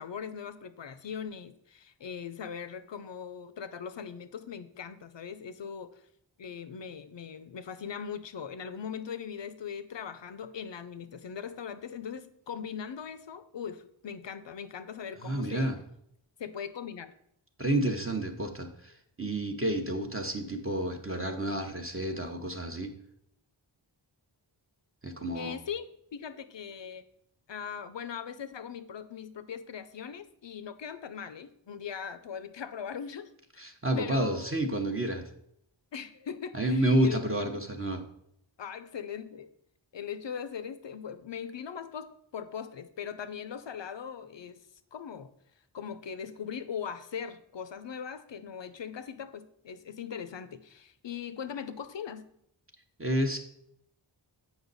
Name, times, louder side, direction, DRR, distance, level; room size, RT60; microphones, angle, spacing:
voice 1, 0.0-6.0 6.4-15.7 16.4-17.1 25.3-25.8 26.1-27.0 27.5-33.3 33.9-34.5 35.9-37.2 38.6-39.5 39.9-44.6 44.9-45.3 45.7-52.3, left 7 dB, 65° left, 12 dB, 0.6 m, -40 dB
voice 2, 15.2-15.8 17.6-22.9 25.0-25.6 33.6-35.3 36.5-38.0 53.0-53.4, right 1 dB, 30° right, 3 dB, 0.8 m, -30 dB
8.0 x 5.3 x 4.0 m, 0.73 s
wide cardioid pair, 60°, 47 cm